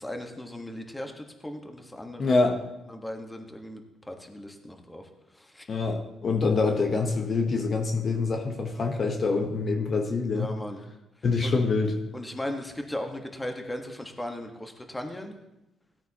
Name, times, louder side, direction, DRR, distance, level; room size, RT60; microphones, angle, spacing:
voice 1, 0.0-2.5 2.9-5.1 5.3-5.7 10.3-10.8 11.4-11.5 12.1-15.4, left 1 dB, 10° left, 4 dB, 1.4 m, -37 dB
voice 2, 2.2-2.6 5.7-10.5 11.2-12.0, left 4 dB, 45° left, 4 dB, 1.0 m, -25 dB
16.5 x 8.8 x 2.9 m, 0.94 s
cardioid pair, 90°, 0 cm